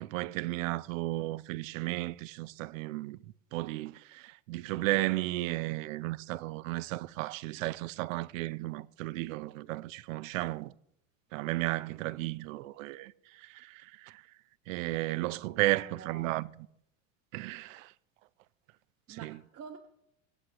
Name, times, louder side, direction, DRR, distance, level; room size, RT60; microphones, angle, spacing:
voice 1, 0.0-10.7 11.3-14.2 14.7-16.5 17.3-17.9 19.1-19.4, right 18 dB, 70° right, 0.7 m, -34 dB
voice 2, 15.6-16.3 19.1-19.8, right 7 dB, 35° right, 1.5 m, -47 dB
24.0 x 8.2 x 3.0 m
hypercardioid pair, 100°, 40 cm